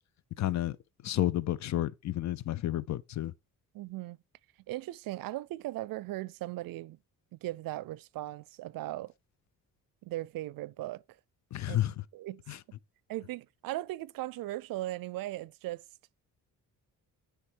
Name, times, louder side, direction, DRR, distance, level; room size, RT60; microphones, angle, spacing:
voice 1, 0.4-0.8 1.0-3.3 11.5-11.9 12.5-12.6, left 13 dB, 55° left, 0.7 m, -31 dB
voice 2, 3.7-4.2 4.7-7.0 7.3-9.1 10.0-11.0 11.7-11.8 12.1-12.4 13.1-15.8, right 16 dB, 85° right, 0.5 m, -38 dB
9.9 x 3.4 x 6.2 m
cardioid pair, 155°, 33 cm